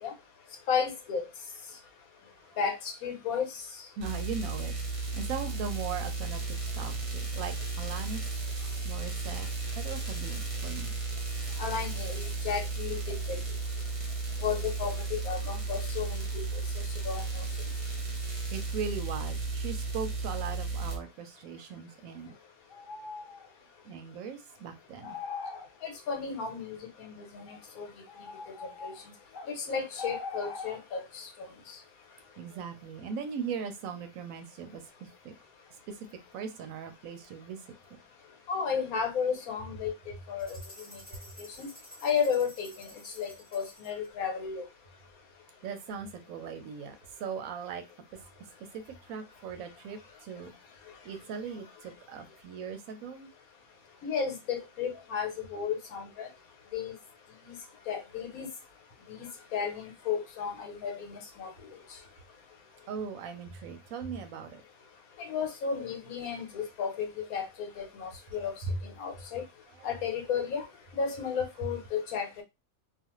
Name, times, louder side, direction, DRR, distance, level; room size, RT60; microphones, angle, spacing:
voice 1, 0.7-1.2 2.6-3.5 11.6-13.4 14.4-16.4 17.0-17.4 25.8-26.8 27.0-27.9 28.8-28.9 29.6-31.5 38.5-39.9 40.3-40.6 41.6-41.7 42.0-42.9 43.2-44.6 54.0-56.3 56.7-57.0 57.4-57.6 57.9-58.5 59.2-61.5 65.2-68.5 69.0-69.4 69.8-70.6 70.9-72.4, left 6 dB, 75° left, 1.2 m, -33 dB
sound 1, 4.0-21.0, right 3 dB, 30° right, 0.8 m, -34 dB
voice 2, 4.0-8.3 8.8-9.5 9.8-11.0 18.5-22.3 23.8-25.2 32.4-35.3 35.9-36.1 36.3-37.6 45.6-47.8 48.7-50.5 51.0-53.3 62.9-64.6 68.7-68.8, right 6 dB, 75° right, 0.9 m, -39 dB
sound 2, 22.7-23.5 25.0-25.7 27.5-27.6 28.1-29.5 30.0-30.8, left 4 dB, 60° left, 0.5 m, -41 dB
sound 3, 40.4-44.1, equal, 5° left, 1.0 m, -52 dB
2.4 x 2.4 x 2.9 m
omnidirectional pair, 1.5 m